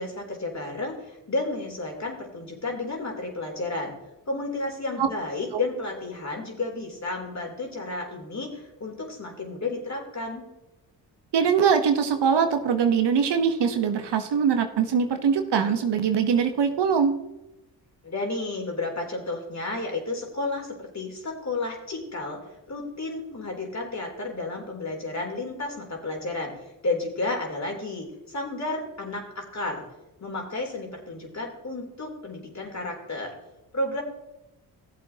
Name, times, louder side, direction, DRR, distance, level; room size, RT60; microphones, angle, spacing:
voice 1, 0.0-3.9 4.3-10.5 18.0-22.4 22.7-29.8 30.2-33.3 33.7-34.0, left 2 dB, 35° left, 0 dB, 3.6 m, -32 dB
voice 2, 11.3-17.1, right 6 dB, 60° right, 7 dB, 1.2 m, -22 dB
16.0 x 7.6 x 2.9 m, 0.97 s
hypercardioid pair, 45°, 48 cm